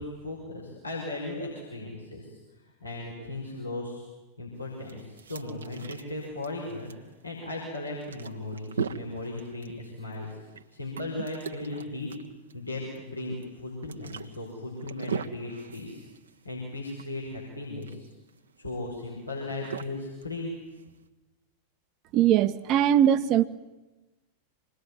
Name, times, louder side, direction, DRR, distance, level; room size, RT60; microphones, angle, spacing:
voice 1, 0.0-2.3 2.8-4.1 4.4-6.9 7.2-10.4 10.7-12.1 12.5-16.0 16.4-18.1 18.6-20.5, left 2 dB, 85° left, 5.9 m, -37 dB
sound 1, 4.6-21.1, right 6 dB, 70° right, 1.4 m, -41 dB
voice 2, 22.1-23.5, right 10 dB, 35° right, 1.2 m, -21 dB
26.5 x 21.0 x 9.9 m
figure-of-eight pair, 90°, 0 cm